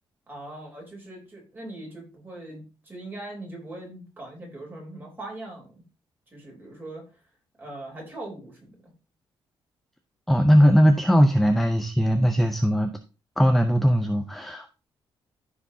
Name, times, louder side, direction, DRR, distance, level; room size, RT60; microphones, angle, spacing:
voice 1, 0.3-5.8 6.3-7.1 7.6-8.9, right 1 dB, 20° right, -1 dB, 3.5 m, -41 dB
voice 2, 10.3-12.9 13.4-14.7, equal, ahead, 6 dB, 0.5 m, -19 dB
14.0 x 4.8 x 2.7 m, 0.30 s
cardioid pair, 155°, 9 cm